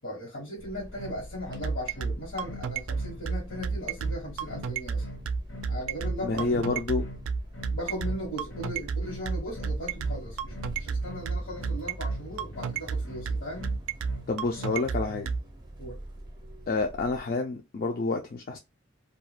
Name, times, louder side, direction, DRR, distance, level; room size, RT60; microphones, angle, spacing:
voice 1, 0.0-5.2 5.7-6.7 7.7-13.7 15.8-16.0, equal, 80° left, 1.1 m, -38 dB
sound 1, 0.6-17.2, equal, 20° right, 0.5 m, -45 dB
sound 2, 0.9-15.4, left 2 dB, 65° left, 0.8 m, -44 dB
sound 3, 1.4-15.4, right 5 dB, 85° right, 0.3 m, -30 dB
voice 2, 6.2-7.0 14.3-15.3 16.7-18.6, left 3 dB, 45° left, 0.3 m, -28 dB
2.3 x 2.2 x 3.3 m
head